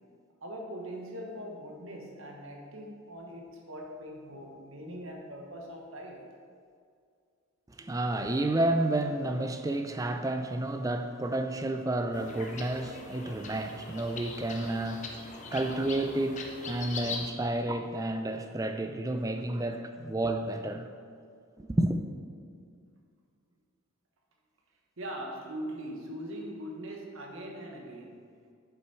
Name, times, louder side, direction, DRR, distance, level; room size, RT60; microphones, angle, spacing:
voice 1, 0.4-6.2 15.3-15.6 25.0-28.2, equal, 65° right, 1.2 m, -41 dB
voice 2, 7.7-20.9 21.6-22.0, right 1 dB, 15° right, 0.3 m, -31 dB
sound 1, 12.1-17.3, left 4 dB, 35° left, 0.8 m, -41 dB
7.7 x 7.0 x 4.3 m
head